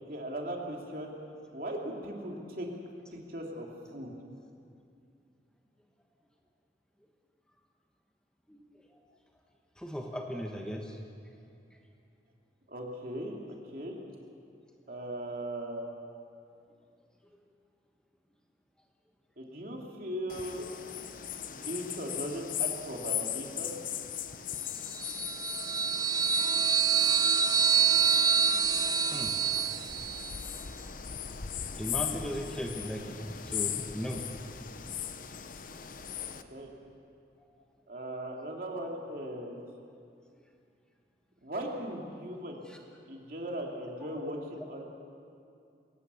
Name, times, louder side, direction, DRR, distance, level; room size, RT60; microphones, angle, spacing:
voice 1, 0.1-1.1 1.5-2.7 3.1-3.7 3.9-4.1 12.7-13.4 13.7-14.0 14.9-15.9 19.4-20.7 21.5-23.7 36.5-36.7 37.9-39.6 41.4-42.6 43.1-44.8, right 1 dB, 50° right, 0 dB, 2.8 m, -38 dB
voice 2, 9.8-11.0 24.9-25.1 29.1-29.8 31.8-33.2 33.4-34.2 34.8-35.0 42.7-42.8, equal, 5° left, 1 dB, 1.2 m, -37 dB
sound 1, 20.3-36.4, left 9 dB, 50° left, 0.8 m, -39 dB
sound 2, 25.0-30.4, right 7 dB, 20° right, 0.5 m, -26 dB
23.0 x 18.0 x 7.0 m, 2.5 s
head